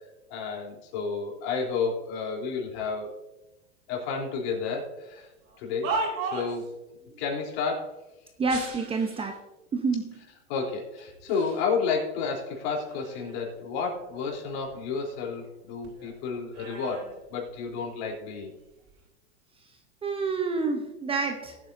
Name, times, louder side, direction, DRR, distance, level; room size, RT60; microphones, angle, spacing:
voice 1, 0.3-3.1 3.9-5.3 5.6-6.7 7.2-8.0 10.5-18.6, left 5 dB, 55° left, -1 dB, 3.7 m, -31 dB
sound 1, 5.4-6.7 8.4-9.4 10.1-10.2 11.0-11.7 12.1-13.6 13.9-15.6 15.8-18.0 18.7-19.0, right 3 dB, 45° right, 3.6 m, -37 dB
voice 2, 8.4-9.4 9.7-10.1 20.0-21.6, right 4 dB, 15° right, 5 dB, 0.8 m, -28 dB
19.0 x 8.5 x 2.7 m, 1.0 s
supercardioid pair, 130°, 36 cm